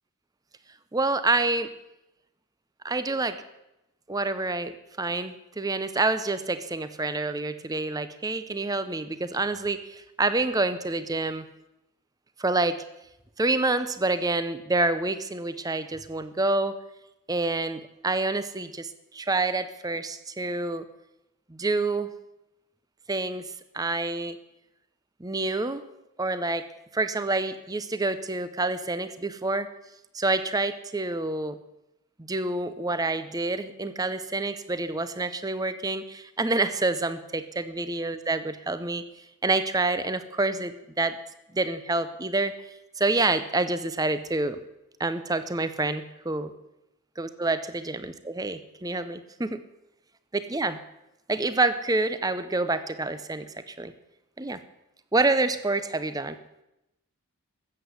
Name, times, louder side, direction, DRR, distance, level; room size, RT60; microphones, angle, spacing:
voice 1, 0.9-1.7 2.8-3.4 4.1-11.4 12.4-12.8 13.4-16.8 17.3-20.9 21.5-22.1 23.1-24.4 25.2-25.8 26.2-26.7 26.9-29.7 30.1-31.6 32.2-39.0 39.4-41.2 41.5-42.6 43.0-44.6 45.0-46.5 47.2-49.6 50.3-50.8 51.3-53.9 54.4-54.6 55.1-56.4, right 2 dB, 15° right, 12 dB, 0.6 m, -27 dB
14.0 x 8.0 x 8.3 m, 0.91 s
head